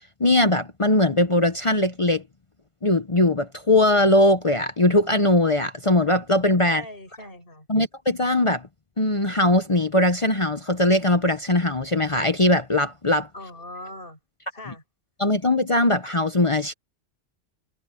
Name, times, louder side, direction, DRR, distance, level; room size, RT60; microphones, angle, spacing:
voice 1, 0.2-2.2 2.8-6.8 7.7-8.7 9.0-13.3 15.2-16.7, left 1 dB, 30° left, 0.9 m, -20 dB
voice 2, 6.7-7.7 13.3-14.2 14.5-14.8, left 1 dB, 50° left, 7.0 m, -40 dB
omnidirectional pair, 1.2 m